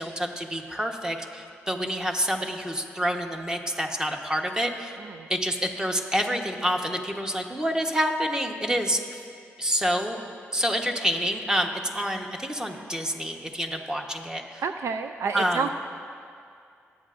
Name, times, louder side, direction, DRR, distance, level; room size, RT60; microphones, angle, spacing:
voice 1, 0.0-5.0 5.3-9.0 9.6-10.2 10.5-14.6 15.3-15.7, equal, 15° right, 3 dB, 1.2 m, -28 dB
voice 2, 14.6-15.7, right 5 dB, 75° right, 8 dB, 0.4 m, -29 dB
19.5 x 8.6 x 2.6 m, 2.4 s
cardioid pair, 65°, 5 cm